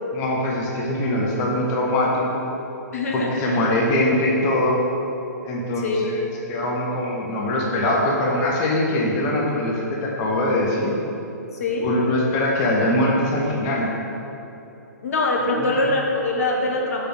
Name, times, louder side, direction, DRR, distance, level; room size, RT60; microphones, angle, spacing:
voice 1, 0.1-2.5 3.1-4.8 5.4-10.9 11.8-13.9 15.6-15.8, left 1 dB, 30° left, -2 dB, 1.1 m, -22 dB
voice 2, 2.9-3.6 5.8-6.1 11.5-11.9 15.0-17.1, left 2 dB, 55° left, 0 dB, 1.4 m, -23 dB
6.7 x 5.2 x 5.7 m, 3.0 s
figure-of-eight pair, 120°, 10 cm